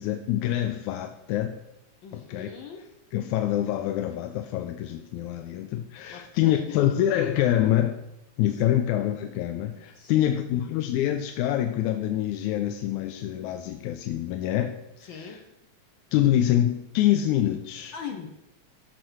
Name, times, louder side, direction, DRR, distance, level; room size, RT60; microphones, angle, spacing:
voice 1, 0.0-1.6 2.1-2.5 3.1-8.0 8.4-15.4 16.1-17.9, left 12 dB, 90° left, 7 dB, 2.0 m, -26 dB
voice 2, 2.0-2.8 6.1-6.7 8.5-8.6 9.9-10.1 15.1-15.4 17.9-18.3, left 6 dB, 70° left, 4 dB, 1.1 m, -40 dB
13.5 x 4.5 x 6.2 m, 0.86 s
omnidirectional pair, 3.4 m